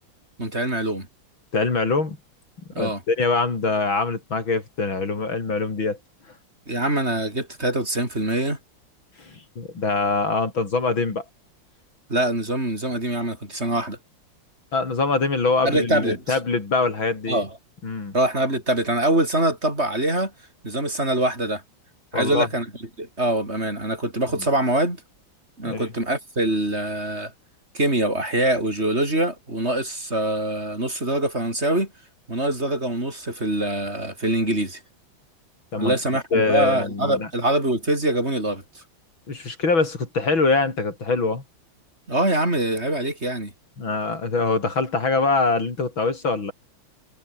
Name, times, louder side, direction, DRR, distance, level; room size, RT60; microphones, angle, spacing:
voice 1, 0.4-1.1 2.7-3.0 6.7-8.6 12.1-14.0 15.6-16.4 17.3-17.6 18.1-20.3 20.6-21.6 22.1-22.7 23.0-25.0 25.6-27.3 27.7-31.9 32.3-34.8 35.8-38.8 42.1-43.5, right 1 dB, 30° right, 6.5 m, -24 dB
voice 2, 1.5-2.2 2.8-6.0 9.2-11.2 14.7-17.4 17.8-18.1 22.1-22.5 25.6-25.9 35.7-35.9 36.3-37.3 39.3-41.4 43.8-46.5, left 3 dB, 75° left, 5.1 m, -23 dB
omnidirectional pair, 2.2 m